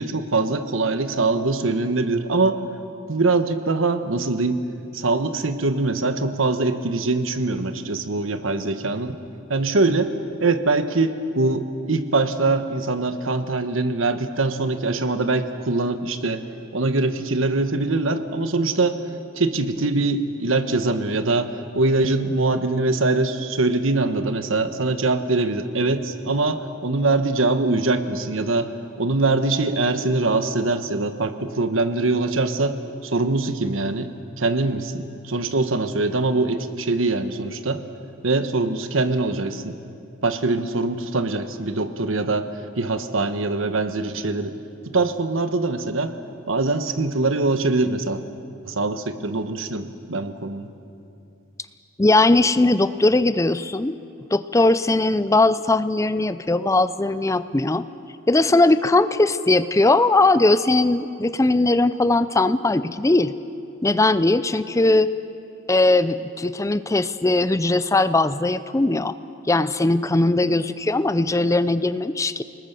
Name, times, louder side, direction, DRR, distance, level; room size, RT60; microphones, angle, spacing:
voice 1, 0.0-2.6 3.1-4.6 4.9-9.2 9.5-10.1 10.4-16.4 16.7-19.0 19.4-28.7 29.0-32.8 33.0-37.8 38.2-39.8 40.2-42.5 42.8-44.5 44.8-46.2 46.5-48.2 48.6-50.7, right 3 dB, 70° right, 9 dB, 1.3 m, -23 dB
voice 2, 52.0-54.0 54.3-57.8 58.3-63.3 63.8-65.1 65.7-69.1 69.5-72.4, left 2 dB, 15° left, 14 dB, 0.5 m, -19 dB
29.5 x 19.5 x 6.9 m, 2.6 s
head